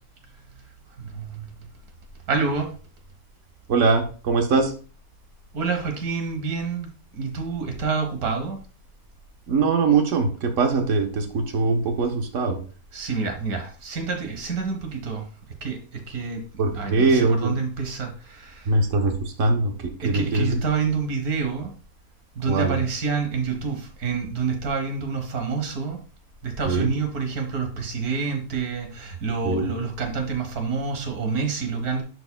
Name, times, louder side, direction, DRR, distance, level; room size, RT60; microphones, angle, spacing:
voice 1, 1.0-1.5 2.3-2.7 5.5-8.6 12.9-15.3 15.6-16.4 16.7-18.7 20.0-21.7 22.4-26.0 26.4-32.0, right 5 dB, 80° right, 4 dB, 1.8 m, -28 dB
voice 2, 3.7-4.7 9.5-12.6 16.6-17.5 18.7-19.7 20.0-20.6 22.5-22.8 26.6-26.9 29.4-29.7, right 3 dB, 60° right, 4 dB, 1.4 m, -22 dB
10.5 x 4.9 x 2.2 m, 0.38 s
omnidirectional pair, 1.6 m